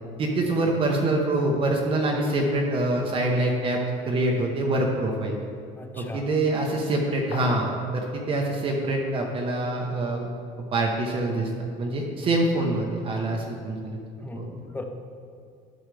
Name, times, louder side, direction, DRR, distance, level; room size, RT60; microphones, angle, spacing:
voice 1, 0.2-5.4 5.9-10.3 10.6-14.0 14.3-14.5, right 2 dB, 35° right, 0 dB, 0.9 m, -25 dB
voice 2, 5.8-6.3 14.2-14.8, left 3 dB, 10° left, 4 dB, 0.5 m, -38 dB
sound 1, 7.3-7.9, left 8 dB, 65° left, 0.5 m, -36 dB
11.5 x 6.3 x 3.3 m, 2.4 s
cardioid pair, 140°, 16 cm